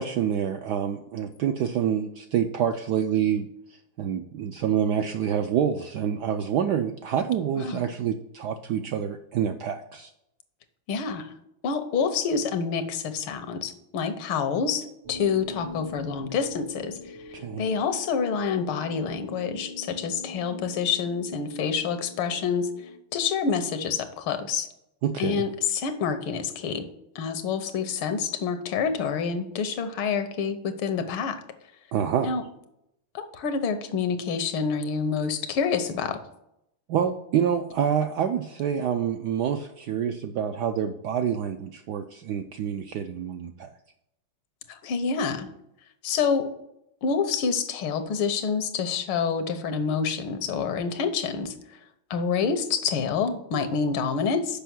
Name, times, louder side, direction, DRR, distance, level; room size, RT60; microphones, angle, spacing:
voice 1, 0.0-10.1 17.3-17.7 25.0-25.4 31.9-32.3 36.9-43.7, right 8 dB, 80° right, 6 dB, 0.9 m, -27 dB
voice 2, 10.9-11.3 11.6-22.7 23.1-24.7 25.2-26.9 27.2-31.4 32.2-32.4 33.2-36.2 44.7-45.5 46.0-46.5 47.0-51.5 52.1-54.6, left 6 dB, 80° left, 9 dB, 1.7 m, -27 dB
sound 1, 15.0-23.0, left 3 dB, 65° right, 0.3 m, -42 dB
6.8 x 5.4 x 6.1 m, 0.81 s
omnidirectional pair, 2.3 m